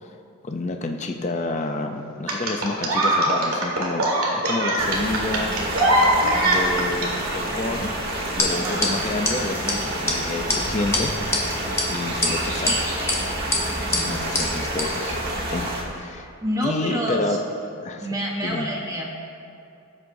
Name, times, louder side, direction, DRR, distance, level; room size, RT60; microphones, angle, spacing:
voice 1, 0.4-5.5 6.4-7.9 8.4-11.1 11.9-13.0 14.1-15.2 15.5-15.7 15.9-16.3 16.6-17.4 17.8-18.0 18.4-18.7, left 2 dB, 30° left, 4 dB, 0.5 m, -29 dB
sound 1, 2.3-7.1 8.3-8.4, right 1 dB, 75° right, 1.7 m, -21 dB
sound 2, 4.8-15.8, right 1 dB, 45° right, 1.3 m, -28 dB
sound 3, 8.4-8.5 8.8-8.9 9.2-9.3 9.7-9.8 10.1-10.2 10.5-10.6 10.9-11.4 11.8-11.9 12.2-12.8 13.1-13.2 13.5-13.6 13.9-14.0 14.3-14.5 14.8-14.9, left 2 dB, 10° left, 1.1 m, -22 dB
voice 2, 8.5-8.9 13.8-14.2 16.4-17.4 18.0-19.2, equal, 15° right, -1 dB, 1.0 m, -28 dB
17.0 x 7.8 x 2.7 m, 2.6 s
head